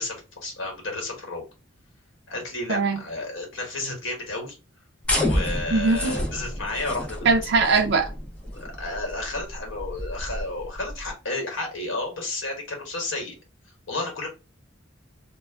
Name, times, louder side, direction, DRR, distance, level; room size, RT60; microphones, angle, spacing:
voice 1, 0.0-1.4 2.3-4.6 5.2-7.3 8.5-13.3 13.9-14.3, left 2 dB, 75° left, 1 dB, 1.1 m, -32 dB
voice 2, 2.7-3.0 5.7-6.1 7.2-8.1, right 4 dB, 55° right, 4 dB, 0.4 m, -21 dB
sound 1, 5.0-11.1, left 1 dB, 5° left, 0.5 m, -30 dB
2.2 x 2.1 x 3.3 m, 0.29 s
head